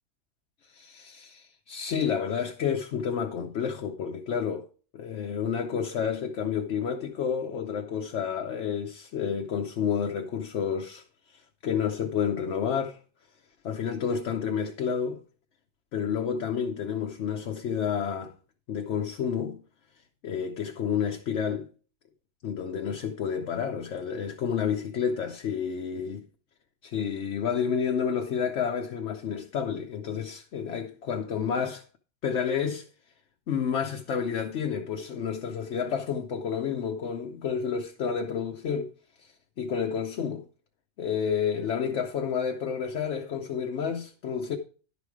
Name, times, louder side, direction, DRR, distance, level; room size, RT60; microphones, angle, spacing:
voice 1, 0.7-4.7 4.9-13.0 13.6-15.2 15.9-18.3 18.7-19.6 20.2-21.7 22.4-26.2 26.8-31.8 32.2-32.9 33.5-38.9 39.2-40.4 41.0-44.6, left 7 dB, 65° left, 1.0 m, -30 dB
11.0 x 5.1 x 4.8 m
omnidirectional pair, 1.3 m